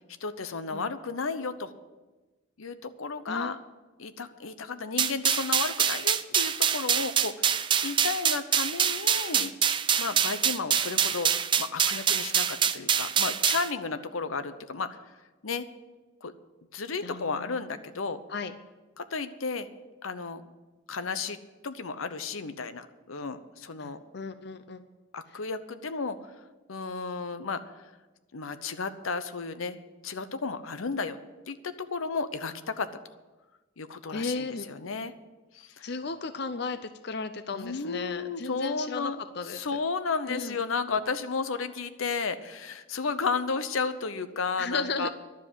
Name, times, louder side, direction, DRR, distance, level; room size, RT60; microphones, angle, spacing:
voice 1, 0.2-1.7 2.6-3.6 4.0-9.5 10.0-11.3 11.6-15.0 15.4-15.7 16.2-16.3 16.7-18.2 19.0-19.7 20.0-20.4 20.9-21.4 21.6-24.0 25.1-26.2 26.7-27.9 28.3-29.8 30.0-31.2 31.5-32.9 33.8-35.1 35.5-35.9 37.5-45.1, left 4 dB, 85° left, 11 dB, 0.8 m, -33 dB
sound 1, 5.0-13.7, right 8 dB, 25° right, 0.4 m, -25 dB
voice 2, 17.0-17.6 18.3-18.5 23.8-24.8 34.1-34.7 35.8-39.6 40.3-40.6 44.6-45.1, left 4 dB, 55° left, 10 dB, 0.6 m, -35 dB
11.5 x 7.5 x 10.0 m, 1.2 s
head